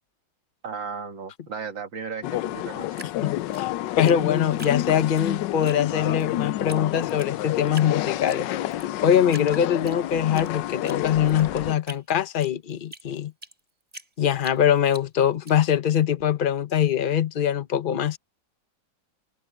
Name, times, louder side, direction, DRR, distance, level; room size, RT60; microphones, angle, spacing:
voice 1, 0.6-3.1, right 5 dB, 70° right, 2.9 m, -35 dB
sound 1, 2.2-11.8, left 14 dB, 70° left, 1.2 m, -29 dB
Drip, 2.9-5.3 5.6-6.3 6.7-6.8 7.1-7.9 8.3-8.9 9.3-10.5 10.8-13.6 13.9-15.5, right 1 dB, 15° right, 7.2 m, -43 dB
voice 2, 3.2-3.7 4.0-8.5 8.8-13.3 14.2-18.2, left 9 dB, 40° left, 0.7 m, -23 dB
omnidirectional pair, 2.2 m